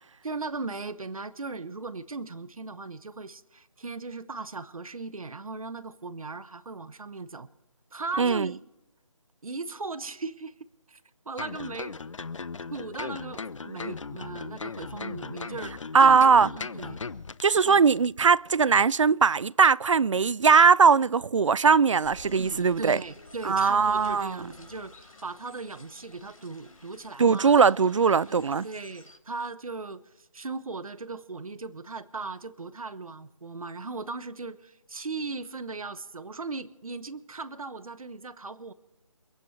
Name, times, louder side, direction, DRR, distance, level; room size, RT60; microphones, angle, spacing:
voice 1, 0.2-7.5 7.9-8.6 9.4-10.6 10.9-12.0 12.7-17.0 17.6-17.8 22.4-27.6 28.3-38.7, right 3 dB, 80° right, 1.0 m, -38 dB
voice 2, 8.2-8.5 15.9-16.5 17.4-23.0 23.4-24.4 27.2-28.7, right 5 dB, 65° right, 0.4 m, -20 dB
sound 1, 11.4-17.7 18.0-18.1, left 4 dB, 65° left, 0.8 m, -38 dB
sound 2, 22.0-29.2, left 2 dB, 85° left, 3.8 m, -51 dB
29.0 x 10.5 x 3.2 m
figure-of-eight pair, 170°, 18 cm